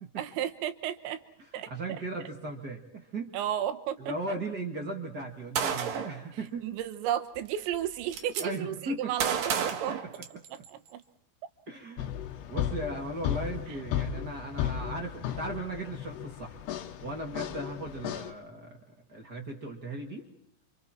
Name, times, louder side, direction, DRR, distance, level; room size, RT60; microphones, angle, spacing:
voice 1, 0.2-1.2 1.5-1.7 3.3-4.1 6.6-10.0 10.5-11.0, right 11 dB, 85° right, 9 dB, 3.5 m, -33 dB
voice 2, 1.7-3.3 4.0-6.7 8.4-9.1 9.6-9.9 10.3-10.4 11.7-12.2 12.5-16.6 17.0-18.8 19.1-20.3, right 2 dB, 35° right, 2 dB, 1.7 m, -37 dB
Gunshot gunfire, 5.6-6.2 7.4-7.5 7.7-8.4 9.2-10.7, right 7 dB, 60° right, 2.8 m, -31 dB
sound 1, 12.0-18.3, left 10 dB, 70° left, 3.1 m, -35 dB
30.0 x 26.5 x 4.5 m, 0.66 s
omnidirectional pair, 5.1 m